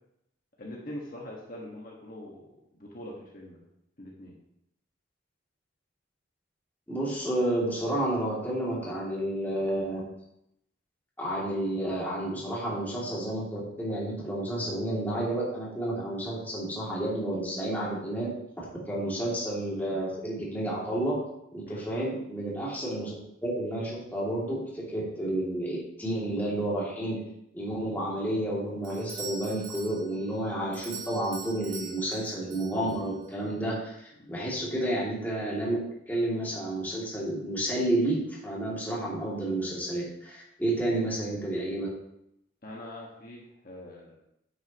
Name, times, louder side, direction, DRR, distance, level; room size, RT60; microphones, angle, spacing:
voice 1, 0.6-2.5 2.8-3.6 4.0-4.3 21.7-21.8 34.2-34.3 42.6-44.1, left 1 dB, 45° left, -3 dB, 1.5 m, -43 dB
voice 2, 6.9-10.0 11.2-18.3 18.6-21.2 21.5-23.1 23.4-27.2 27.5-35.8 36.1-41.9, right 1 dB, 10° left, -6 dB, 2.5 m, -30 dB
Doorbell, 28.8-33.3, right 4 dB, 70° right, 2.0 m, -43 dB
9.7 x 8.5 x 3.0 m, 0.80 s
head